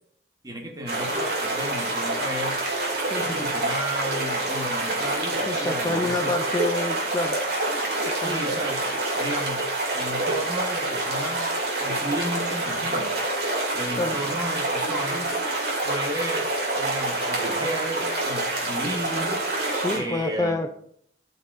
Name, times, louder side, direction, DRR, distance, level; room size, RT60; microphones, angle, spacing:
voice 1, 0.4-2.6 3.2-6.4 8.2-11.5 11.8-13.1 13.7-15.3 15.8-16.5 16.7-19.4 19.9-20.6, equal, 20° right, 2 dB, 1.2 m, -33 dB
sound 1, 0.9-20.0, right 2 dB, 60° right, 2.3 m, -27 dB
voice 2, 5.5-7.4 8.2-8.4 14.0-14.2 19.7-20.7, left 2 dB, 20° left, 7 dB, 0.4 m, -28 dB
12.5 x 5.5 x 2.5 m, 0.66 s
head